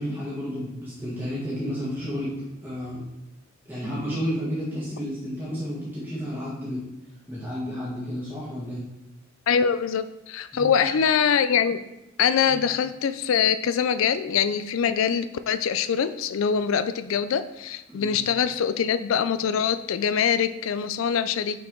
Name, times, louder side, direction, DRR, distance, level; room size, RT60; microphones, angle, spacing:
voice 1, 0.0-2.3 2.6-3.0 3.6-6.8 7.3-8.8 10.5-10.9 12.5-12.6 17.9-18.1, equal, 10° right, -9 dB, 1.6 m, -31 dB
voice 2, 9.5-11.8 12.2-21.6, left 7 dB, 75° left, 12 dB, 0.4 m, -24 dB
5.8 x 4.6 x 3.8 m, 0.95 s
head